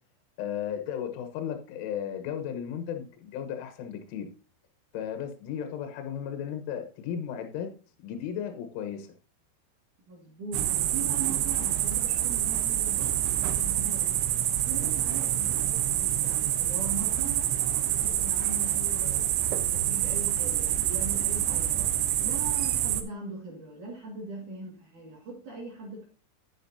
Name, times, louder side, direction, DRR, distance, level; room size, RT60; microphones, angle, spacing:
voice 1, 0.4-4.3 4.9-7.7 8.0-9.1 15.4-15.5, left 9 dB, 75° left, 7 dB, 3.6 m, -35 dB
voice 2, 10.1-13.2 13.6-14.2 14.7-17.5 17.9-19.4 19.7-21.8 22.2-26.0, right 3 dB, 50° right, 0 dB, 2.7 m, -40 dB
sound 1, 10.5-23.0, right 12 dB, 75° right, 3.0 m, -27 dB
10.0 x 9.8 x 2.7 m, 0.36 s
omnidirectional pair, 5.8 m